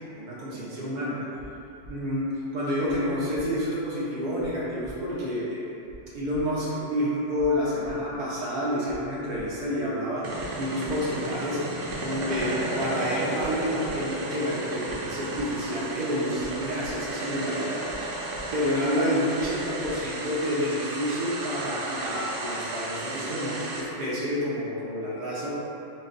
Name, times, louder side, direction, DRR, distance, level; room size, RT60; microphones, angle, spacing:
voice 1, 0.2-1.2 1.9-5.7 6.1-10.3 10.6-11.6 12.0-17.8 18.5-25.5, equal, 50° right, -8 dB, 0.7 m, -29 dB
sound 1, 1.3-1.5 1.8-1.9 2.8-3.0 3.3-3.4 4.3-4.5 4.8-4.9 5.8-6.0 6.3-6.4 7.3-7.5 7.8-7.9 8.8-9.0 9.3-9.4 10.3-10.5 10.8-10.9 11.8-12.0 12.3-12.4 13.3-13.5 13.8-13.9 14.8-15.0 15.3-15.4 16.3-16.5 16.8-16.9 17.8-18.0 18.3-18.4 19.3-19.5 19.8-19.9, left 1 dB, 70° left, 1.0 m, -45 dB
sound 2, 10.2-23.8, right 1 dB, 80° right, 1.0 m, -34 dB
4.2 x 2.2 x 3.8 m, 2.9 s
omnidirectional pair, 1.3 m